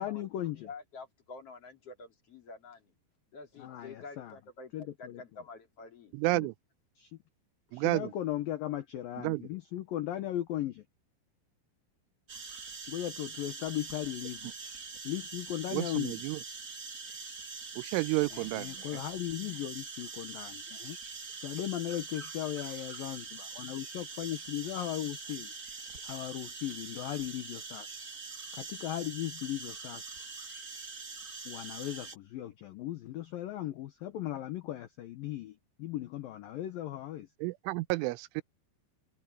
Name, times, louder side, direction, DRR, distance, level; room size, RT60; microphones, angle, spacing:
voice 1, 0.0-0.7 3.6-4.4 4.7-5.2 6.3-6.5 7.0-7.2 7.7-10.9 12.9-14.5 15.0-16.2 18.3-21.0 21.4-25.5 26.0-27.9 28.5-30.1 31.5-37.3, left 13 dB, 75° left, 2.1 m, -37 dB
voice 2, 0.6-2.9 3.3-6.1, left 4 dB, 35° left, 3.5 m, -48 dB
voice 3, 6.1-6.5 7.7-8.1 9.2-9.4 15.7-16.4 17.8-19.0 37.4-38.4, right 22 dB, 85° right, 3.1 m, -31 dB
sound 1, 12.3-32.2, right 4 dB, 50° right, 1.0 m, -44 dB
omnidirectional pair, 5.5 m